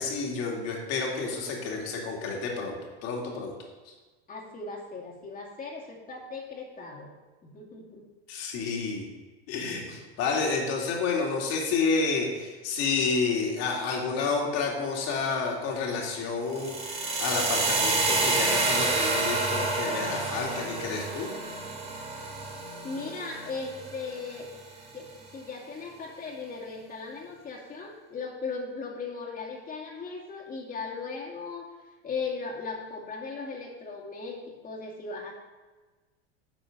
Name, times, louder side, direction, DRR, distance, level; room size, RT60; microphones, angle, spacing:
voice 1, 0.0-3.5 3.8-3.9 8.3-9.1 9.5-21.3, left 4 dB, 55° left, -1 dB, 2.7 m, -30 dB
voice 2, 4.3-7.1 7.4-8.1 22.8-24.5 24.9-31.7 32.0-35.3, left 4 dB, 25° left, -2 dB, 2.4 m, -37 dB
sound 1, 16.5-24.5, right 2 dB, 20° right, 2.2 m, -29 dB
11.5 x 7.0 x 3.9 m, 1.3 s
supercardioid pair, 110°, 31 cm